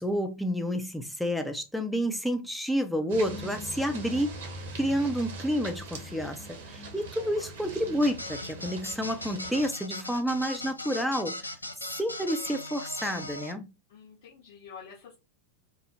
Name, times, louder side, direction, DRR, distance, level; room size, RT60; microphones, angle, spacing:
voice 1, 0.0-4.4 4.7-11.4 12.0-13.7, equal, ahead, 0.4 m, -29 dB
sound 1, 3.1-9.7, right 2 dB, 55° right, 0.8 m, -41 dB
voice 2, 6.5-7.5 13.9-15.2, left 7 dB, 55° left, 0.9 m, -49 dB
sound 2, 8.0-13.5, left 2 dB, 85° left, 0.3 m, -39 dB
2.4 x 2.0 x 3.0 m
figure-of-eight pair, 90°, 0 cm